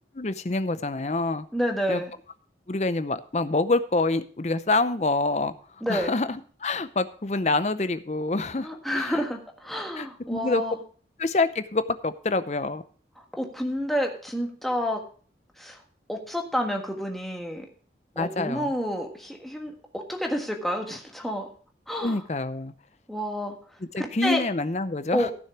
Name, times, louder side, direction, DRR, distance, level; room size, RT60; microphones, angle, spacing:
voice 1, 0.1-1.5 1.9-2.0 2.7-8.7 8.9-9.2 10.0-10.6 11.2-12.8 18.2-18.7 22.0-22.7 23.9-25.3, left 3 dB, 40° left, 12 dB, 0.6 m, -26 dB
voice 2, 1.5-2.1 5.8-6.1 8.6-10.8 13.2-15.0 15.6-15.8 16.1-17.6 18.1-21.5 21.9-22.2 23.1-23.5 24.0-24.4 25.1-25.3, equal, ahead, 2 dB, 1.5 m, -29 dB
14.5 x 6.4 x 4.7 m, 0.43 s
head